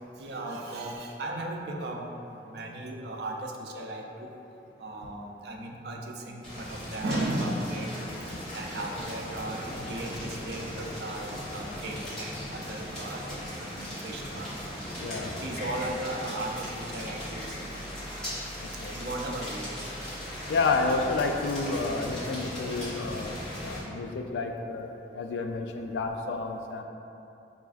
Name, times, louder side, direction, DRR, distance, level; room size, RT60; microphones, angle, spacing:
voice 1, 0.2-2.1 2.5-4.0 4.8-7.9 8.5-14.5 15.2-17.7 18.9-19.7, right 1 dB, 65° right, 1 dB, 0.4 m, -36 dB
sound 1, 6.4-23.8, equal, 5° left, 1.0 m, -38 dB
voice 2, 15.0-15.3 18.6-18.9 20.5-26.8, left 3 dB, 75° left, 4 dB, 0.3 m, -30 dB
5.7 x 2.4 x 2.4 m, 2.9 s
head